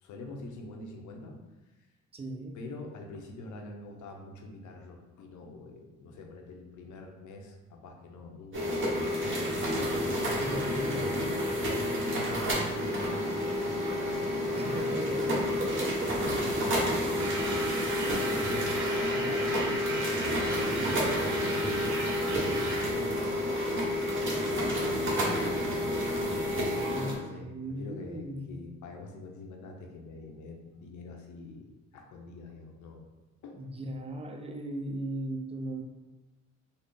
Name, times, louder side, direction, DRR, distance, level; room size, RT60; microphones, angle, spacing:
voice 1, 0.0-1.4 2.5-9.7 10.7-15.8 16.1-17.0 17.8-23.9 24.5-25.6 26.7-27.5 27.8-33.1 33.4-33.6, left 2 dB, 75° left, 2 dB, 0.7 m, -44 dB
voice 2, 2.1-2.6 10.3-11.6 14.6-16.5 20.8-21.0 26.9-28.5 33.5-35.8, right 1 dB, 20° right, 4 dB, 0.5 m, -38 dB
sound 1, 8.5-27.2, left 1 dB, 40° right, 1.1 m, -30 dB
sound 2, 17.2-23.0, right 2 dB, 75° right, 0.9 m, -36 dB
3.9 x 2.0 x 3.5 m, 1.1 s
cardioid pair, 90°, 30 cm